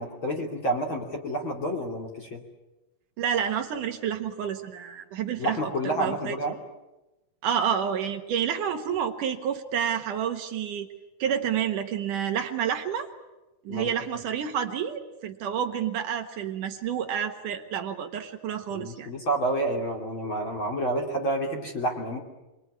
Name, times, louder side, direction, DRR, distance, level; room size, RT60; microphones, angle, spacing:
voice 1, 0.0-2.4 5.4-6.6 13.7-13.9 18.7-22.2, right 1 dB, 30° left, 1 dB, 2.8 m, -29 dB
voice 2, 3.2-6.4 7.4-10.9 11.2-13.1 13.6-19.1, right 8 dB, 65° right, 5 dB, 2.1 m, -29 dB
27.0 x 22.0 x 9.5 m, 1.0 s
omnidirectional pair, 5.5 m